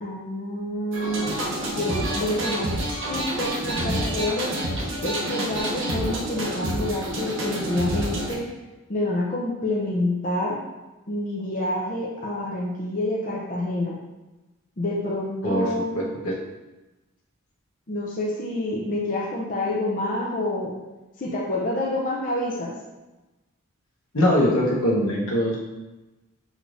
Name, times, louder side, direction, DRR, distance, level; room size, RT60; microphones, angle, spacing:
voice 1, 0.0-4.5 5.0-8.4 8.9-10.6 11.1-13.9 14.8-16.0 17.9-20.7 21.2-22.7, left 1 dB, 40° left, -4 dB, 0.6 m, -28 dB
sound 1, 0.9-8.4, right 1 dB, 60° right, 0.9 m, -28 dB
voice 2, 15.4-16.3 24.1-25.6, equal, 80° left, -3 dB, 1.1 m, -22 dB
6.3 x 3.2 x 2.6 m, 1.1 s
head